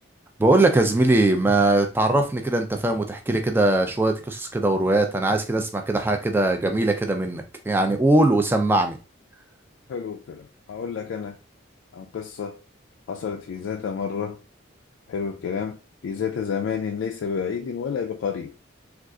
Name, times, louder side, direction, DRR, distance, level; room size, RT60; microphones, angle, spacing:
voice 1, 0.4-9.0, right 2 dB, 10° right, 0.3 m, -21 dB
voice 2, 9.9-11.4 11.9-12.6 13.1-14.4 15.1-18.5, left 6 dB, 75° left, 0.3 m, -30 dB
3.7 x 2.4 x 2.3 m
head